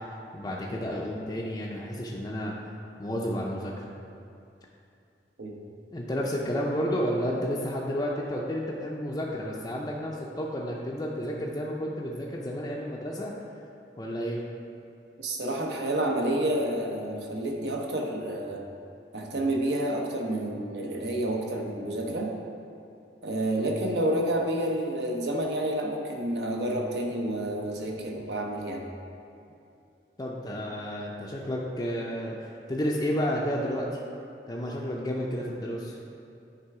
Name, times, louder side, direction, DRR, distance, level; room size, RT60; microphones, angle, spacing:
voice 1, 0.3-2.5 3.0-3.9 5.9-13.3 14.0-14.4 30.2-34.0 34.5-36.0, equal, 20° left, -4 dB, 0.5 m, -31 dB
voice 2, 15.2-18.6 19.1-22.3 23.2-28.9, right 1 dB, 70° right, 0 dB, 0.9 m, -29 dB
9.5 x 3.4 x 4.7 m, 2.6 s
head